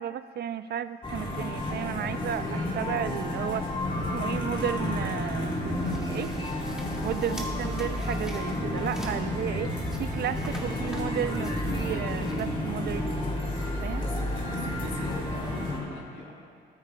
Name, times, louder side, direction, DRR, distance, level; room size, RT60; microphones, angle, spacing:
voice 1, 0.0-3.7 4.1-6.3 7.0-13.1 13.8-14.0, right 10 dB, 55° right, 13 dB, 0.4 m, -33 dB
sound 1, 1.0-15.8, left 1 dB, 25° left, 3.6 m, -31 dB
sound 2, 3.9-14.0, equal, 5° right, 2.0 m, -46 dB
voice 2, 7.0-7.5 11.8-12.0 14.0-16.3, left 2 dB, 70° left, -2 dB, 3.0 m, -43 dB
19.0 x 13.5 x 2.2 m, 2.2 s
cardioid pair, 90°, 20 cm